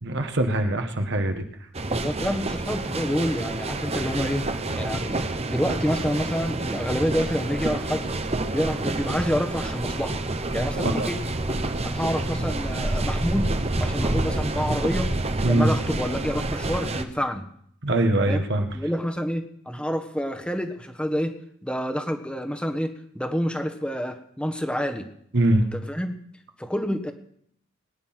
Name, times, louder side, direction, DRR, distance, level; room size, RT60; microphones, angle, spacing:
voice 1, 0.0-1.4 10.7-11.1 15.4-15.7 17.8-18.7 25.3-25.6, right 1 dB, 55° right, 6 dB, 1.5 m, -22 dB
sound 1, 1.7-17.0, right 2 dB, 30° right, 1.0 m, -28 dB
voice 2, 1.9-4.5 4.8-8.1 8.5-10.2 10.5-11.2 11.5-13.5 13.8-15.1 15.4-17.4 18.3-18.4 18.7-21.3 21.6-25.1 25.7-26.1 26.6-27.1, equal, 5° left, 6 dB, 1.3 m, -28 dB
21.5 x 9.9 x 5.9 m, 0.67 s
head